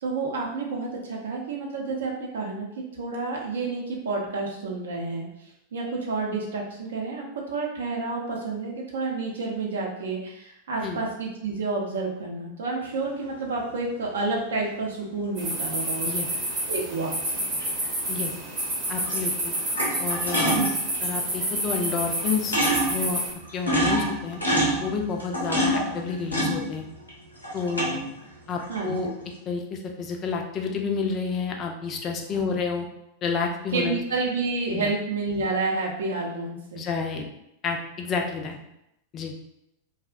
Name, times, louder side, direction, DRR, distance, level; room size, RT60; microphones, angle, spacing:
voice 1, 0.0-5.2 5.7-7.2 7.5-16.1 16.7-17.3 20.4-20.7 28.7-29.1 32.3-32.6 33.7-36.8, right 3 dB, 65° right, -1 dB, 0.5 m, -30 dB
sound 1, 13.5-13.6 17.6-17.8 18.8-19.2 19.5-21.0 21.8-21.9 22.2-22.3 22.5-23.0 23.4-27.1 27.4-28.1 28.6-29.1, equal, 85° left, 0.7 m, -26 dB
sound 2, 15.4-23.3, right 1 dB, 35° right, 0.8 m, -29 dB
voice 2, 18.9-19.5 20.0-20.6 21.0-22.6 22.9-23.2 23.5-24.4 24.8-26.8 27.5-28.0 28.5-29.1 29.5-32.8 33.2-34.0 34.7-34.9 36.8-37.2 37.6-38.6 39.1-39.3, left 5 dB, 30° left, 2 dB, 0.3 m, -29 dB
2.5 x 2.0 x 2.4 m, 0.82 s
figure-of-eight pair, 90°, 0 cm